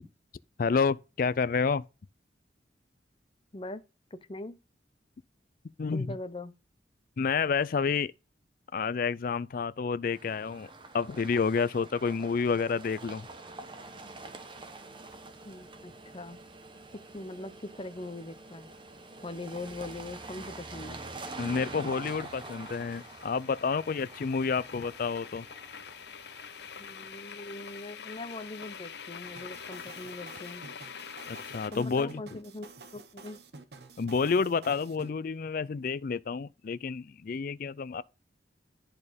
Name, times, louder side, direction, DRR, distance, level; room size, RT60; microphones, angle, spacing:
voice 1, 0.6-1.9 5.8-6.1 7.2-8.1 8.7-10.7 10.9-13.3 21.4-25.5 31.3-32.2 34.0-38.0, left 5 dB, 50° left, 0.4 m, -29 dB
voice 2, 4.1-4.6 5.9-6.5 15.4-16.4 16.9-18.7 19.2-21.0 26.8-30.7 31.7-33.4, left 2 dB, 30° left, 0.8 m, -41 dB
sound 1, 10.1-27.1, right 2 dB, 30° right, 1.0 m, -46 dB
sound 2, 15.1-15.2 19.5-31.7, left 7 dB, 70° left, 0.8 m, -46 dB
sound 3, 29.4-35.1, right 3 dB, 65° right, 1.1 m, -50 dB
11.0 x 4.4 x 5.1 m
head